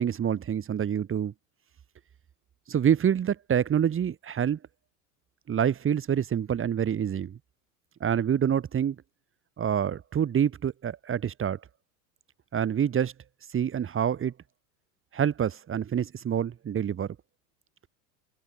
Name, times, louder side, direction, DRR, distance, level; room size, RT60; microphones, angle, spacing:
voice 1, 0.0-1.3 2.7-4.6 5.5-7.4 8.0-9.0 9.6-11.6 12.5-13.1 13.5-14.3 15.1-17.2, right 9 dB, 30° right, 4.9 m, -26 dB
hypercardioid pair, 95°, 43 cm